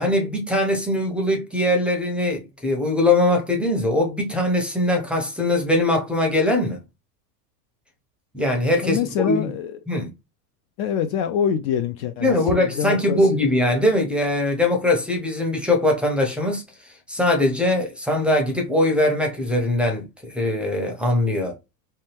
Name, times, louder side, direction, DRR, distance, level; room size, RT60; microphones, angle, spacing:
voice 1, 0.0-6.8 8.3-9.0 9.2-9.5 9.9-10.1 12.2-16.6 17.1-21.6, left 1 dB, ahead, 0.6 m, -21 dB
voice 2, 8.8-9.8 10.8-13.5, left 8 dB, 45° left, 0.4 m, -25 dB
2.8 x 2.2 x 3.2 m
supercardioid pair, 110°, 50 cm